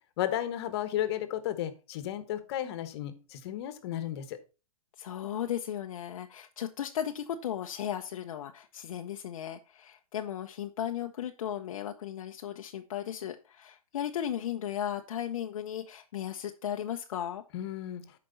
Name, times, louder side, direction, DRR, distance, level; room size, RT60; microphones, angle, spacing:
voice 1, 0.2-4.4 17.5-18.0, left 12 dB, 45° left, 11 dB, 1.3 m, -33 dB
voice 2, 5.0-17.4, left 10 dB, 65° left, 4 dB, 0.8 m, -36 dB
12.5 x 5.2 x 4.0 m, 0.31 s
hypercardioid pair, 150°, 19 cm